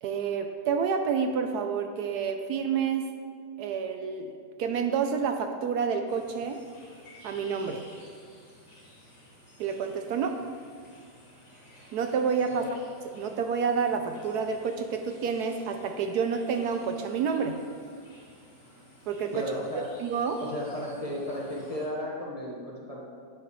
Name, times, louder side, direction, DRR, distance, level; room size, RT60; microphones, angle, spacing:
voice 1, 0.0-3.1 3.6-6.6 7.2-7.9 9.6-10.3 11.9-12.6 13.1-17.6 19.1-19.4 20.0-20.4, right 6 dB, 75° right, 5 dB, 1.1 m, -29 dB
sound 1, 6.1-21.9, equal, 40° left, 2.7 m, -54 dB
voice 2, 19.3-19.8 20.4-23.0, equal, 25° left, -4 dB, 1.2 m, -34 dB
9.3 x 9.0 x 3.1 m, 2.1 s
omnidirectional pair, 1.8 m